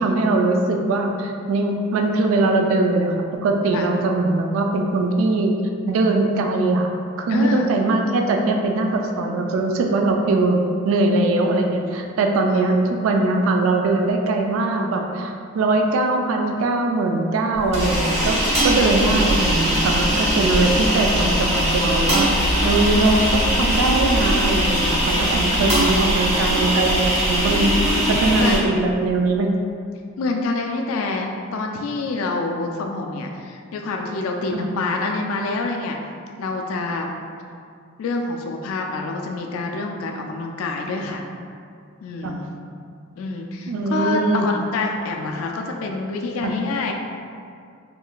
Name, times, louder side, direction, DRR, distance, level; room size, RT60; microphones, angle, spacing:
voice 1, 0.0-3.1 3.4-5.6 5.9-6.9 7.2-18.4 18.6-22.3 22.6-27.0 27.3-27.7 28.1-29.5 34.5-34.7 42.2-42.4 43.7-44.5 46.4-46.5, right 2 dB, 70° right, 2 dB, 0.3 m, -21 dB
voice 2, 7.3-7.7 12.5-12.7 20.1-20.7 23.3-23.7 25.5-25.9 28.4-28.6 30.2-36.0 36.4-37.1 38.0-41.2 42.0-42.5 43.2-46.9, left 3 dB, 80° left, 2 dB, 0.3 m, -27 dB
sound 1, 17.5-28.6, equal, 30° right, 1.1 m, -20 dB
3.7 x 2.5 x 2.2 m, 2.3 s
head